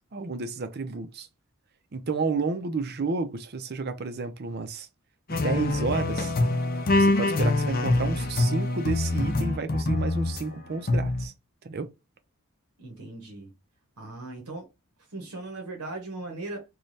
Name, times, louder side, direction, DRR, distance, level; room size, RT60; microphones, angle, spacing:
voice 1, 0.1-1.3 1.9-4.9 5.3-6.3 7.0-11.3 11.6-11.9, right 4 dB, 45° right, 0.5 m, -31 dB
sound 1, 5.3-10.4 10.9-11.3, left 2 dB, 40° left, 0.5 m, -25 dB
voice 2, 12.8-13.5 14.0-14.7 15.1-16.6, right 2 dB, 90° right, 1.0 m, -38 dB
3.2 x 2.3 x 4.0 m
head